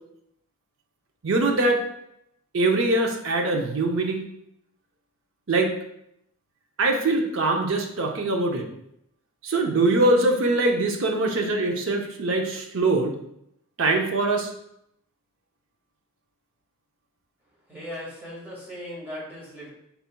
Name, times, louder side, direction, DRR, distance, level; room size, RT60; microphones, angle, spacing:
voice 1, 1.2-1.8 2.5-4.2 5.5-5.7 6.8-8.7 9.4-13.1 13.8-14.5, right 2 dB, 60° right, 3 dB, 0.6 m, -23 dB
voice 2, 17.7-19.7, equal, 10° right, -7 dB, 1.8 m, -38 dB
5.6 x 4.1 x 2.2 m, 0.77 s
head